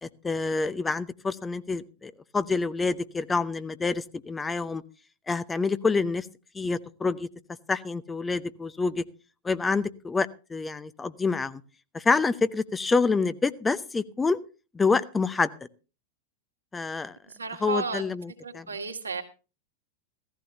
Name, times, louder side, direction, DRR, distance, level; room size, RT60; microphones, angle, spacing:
voice 1, 0.0-4.8 5.3-6.3 6.5-7.3 7.7-9.0 9.4-11.6 11.9-14.4 14.7-15.5 16.7-17.2 17.6-18.7, left 4 dB, 15° left, 14 dB, 0.8 m, -27 dB
voice 2, 17.3-18.0 18.4-19.2, right 5 dB, 75° right, 3 dB, 2.1 m, -33 dB
16.5 x 15.0 x 2.8 m, 0.34 s
figure-of-eight pair, 90°, 0 cm